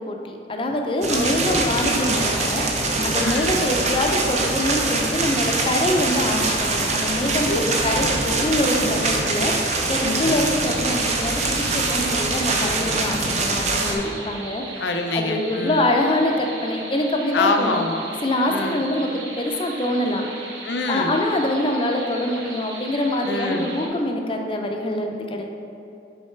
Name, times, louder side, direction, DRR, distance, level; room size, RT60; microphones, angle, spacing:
voice 1, 0.1-14.8 15.1-17.8 18.2-20.3 20.9-25.5, left 1 dB, 30° left, 2 dB, 0.5 m, -24 dB
sound 1, 1.0-13.9, right 3 dB, 40° right, 0.6 m, -23 dB
voice 2, 1.1-2.1 3.2-3.7 7.5-7.6 8.0-8.1 10.0-10.4 12.6-13.0 14.8-15.9 17.3-18.0 18.5-18.9 20.6-21.1 23.2-23.7, left 2 dB, 75° left, 5 dB, 0.5 m, -26 dB
sound 2, 10.6-23.9, right 3 dB, 80° right, 1.0 m, -38 dB
6.4 x 4.1 x 4.4 m, 2.9 s
head